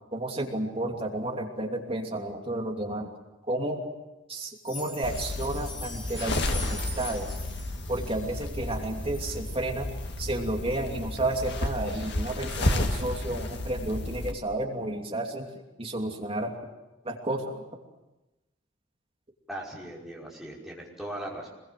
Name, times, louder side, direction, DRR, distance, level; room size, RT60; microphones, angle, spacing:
voice 1, 0.1-3.1 3.5-3.8 4.3-7.3 7.9-9.9 10.2-15.5 15.8-16.5 17.0-17.5, right 1 dB, 30° right, 1 dB, 2.9 m, -31 dB
sound 1, 4.6-9.3 9.8-9.9 10.3-10.4 10.9-11.0, left 2 dB, 25° left, 3.8 m, -43 dB
sound 2, 5.0-14.3, left 1 dB, 60° left, 2.1 m, -32 dB
voice 2, 19.5-21.5, right 1 dB, ahead, -4 dB, 5.4 m, -39 dB
25.5 x 21.5 x 7.7 m, 1.0 s
head